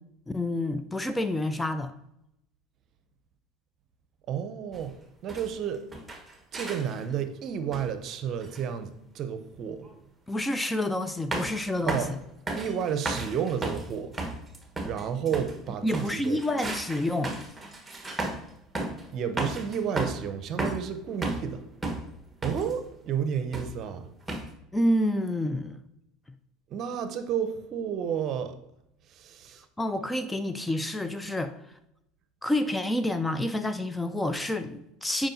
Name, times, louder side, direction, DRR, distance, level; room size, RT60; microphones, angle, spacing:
voice 1, 0.3-1.9 10.3-12.2 15.8-17.3 24.7-25.8 29.8-31.5 32.4-35.3, left 1 dB, 10° left, 10 dB, 0.5 m, -28 dB
voice 2, 4.3-4.9 5.2-5.8 6.5-9.9 11.8-12.1 12.5-14.1 14.8-16.4 19.1-21.6 22.4-24.1 26.7-28.6 29.1-29.6, right 8 dB, 50° right, 10 dB, 0.7 m, -31 dB
sound 1, 4.7-4.9 5.3-5.6 5.9-7.1 7.7-8.0 8.4-8.6 9.8-9.9 11.3-11.6 11.9-12.2 12.5-15.6 15.9-18.5 18.8-19.1 19.4-20.3 20.6-21.5 21.8-22.8 23.5-23.9 24.3-24.5, right 2 dB, 10° right, 1.2 m, -34 dB
8.9 x 5.0 x 2.7 m, 0.80 s
hypercardioid pair, 75°, 0 cm